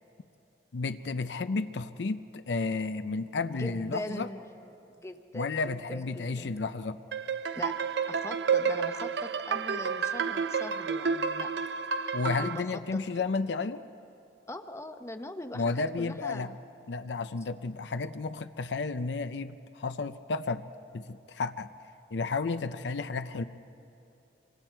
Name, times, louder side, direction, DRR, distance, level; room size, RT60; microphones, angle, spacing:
voice 1, 0.7-4.3 5.3-7.0 12.1-13.8 15.5-16.5 16.9-20.6 20.9-21.7 22.1-23.4, left 4 dB, 85° left, 11 dB, 0.6 m, -32 dB
voice 2, 3.5-6.5 7.5-7.8 8.1-11.5 12.2-13.2 14.5-16.6, left 1 dB, 15° left, 8 dB, 0.8 m, -41 dB
sound 1, 7.1-12.6, right 6 dB, 75° right, 0.6 m, -30 dB
26.5 x 24.5 x 4.5 m, 2.8 s
head